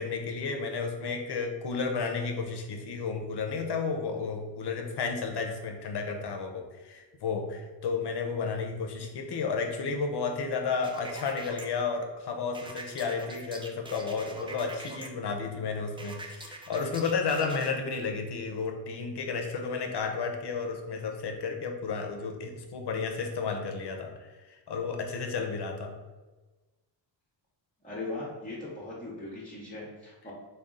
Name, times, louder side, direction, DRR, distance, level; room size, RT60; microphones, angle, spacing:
voice 1, 0.0-25.9, left 5 dB, 65° left, 4 dB, 0.7 m, -32 dB
sound 1, 10.8-11.7 12.5-15.1 16.0-17.7, right 2 dB, 15° right, 0.3 m, -43 dB
voice 2, 27.8-30.3, left 2 dB, 20° left, -6 dB, 0.8 m, -39 dB
3.6 x 2.3 x 3.7 m, 1.2 s
wide cardioid pair, 100°, 44 cm